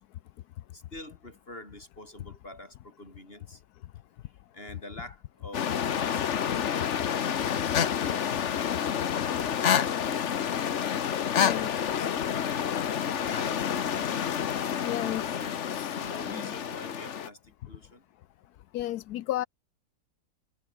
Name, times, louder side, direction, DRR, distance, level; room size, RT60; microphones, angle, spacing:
voice 1, 0.7-3.6 4.5-9.7 11.1-12.7 13.0-14.7 15.2-15.6 15.9-18.0, left 1 dB, 40° left, 7.5 m, -47 dB
sound 1, 5.5-17.3, left 8 dB, 55° left, 1.2 m, -29 dB
voice 2, 11.4-11.7 14.8-15.9 16.2-16.5 18.7-19.5, left 14 dB, 85° left, 1.2 m, -34 dB
omnidirectional pair, 1.6 m